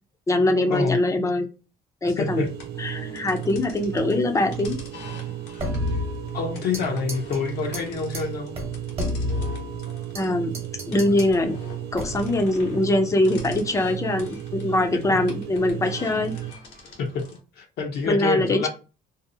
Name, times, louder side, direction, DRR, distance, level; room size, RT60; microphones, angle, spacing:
voice 1, 0.3-1.5 2.0-2.5 2.8-4.8 10.2-10.5 10.9-11.6 11.9-16.3 18.1-18.7, left 1 dB, 20° left, 6 dB, 0.5 m, -22 dB
voice 2, 2.1-2.5 3.2-3.3 6.3-8.5 17.0-17.2 17.6-18.7, left 5 dB, 70° left, 1 dB, 0.6 m, -27 dB
sound 1, 2.2-16.5, right 13 dB, 75° right, 0.4 m, -35 dB
sound 2, 2.5-17.4, left 2 dB, 85° left, 1.1 m, -45 dB
sound 3, 5.6-6.8 7.1-7.4 7.7-7.8 8.1-8.2 8.6-10.2 10.5-11.3 11.9-12.4, left 2 dB, 35° right, 1.0 m, -30 dB
2.6 x 2.0 x 2.6 m, 0.34 s
cardioid pair, 110°, 17 cm